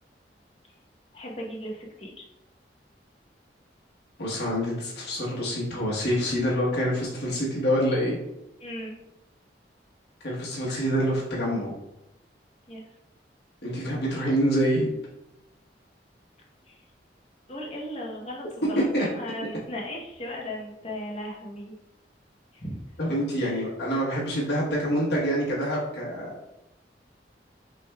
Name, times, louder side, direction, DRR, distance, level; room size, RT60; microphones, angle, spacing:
voice 1, 1.1-2.2 8.6-9.0 12.7-12.8 16.7-16.8 17.5-21.7 22.5-22.8 23.4-23.7, left 1 dB, 35° left, -2 dB, 0.9 m, -37 dB
voice 2, 4.2-8.2 10.2-11.7 13.6-14.9 18.7-19.1 23.0-26.3, equal, 70° left, -5 dB, 1.2 m, -26 dB
6.0 x 3.3 x 2.3 m, 0.92 s
head